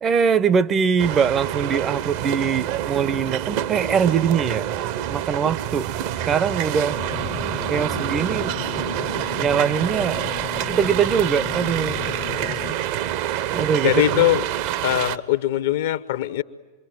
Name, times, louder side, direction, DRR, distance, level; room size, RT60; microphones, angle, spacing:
voice 1, 0.0-4.7 5.1-5.9 6.3-7.0 7.7-8.5 9.4-10.3 10.7-12.1 13.5-14.2, right 7 dB, 25° right, 0.8 m, -22 dB
sound 1, 1.0-15.2, right 11 dB, 45° right, 0.9 m, -27 dB
sound 2, 6.9-12.8, left 12 dB, 30° left, 0.8 m, -35 dB
voice 2, 13.8-14.4 14.8-16.4, left 14 dB, 55° left, 1.0 m, -21 dB
27.5 x 23.0 x 9.3 m
figure-of-eight pair, 90°, 0 cm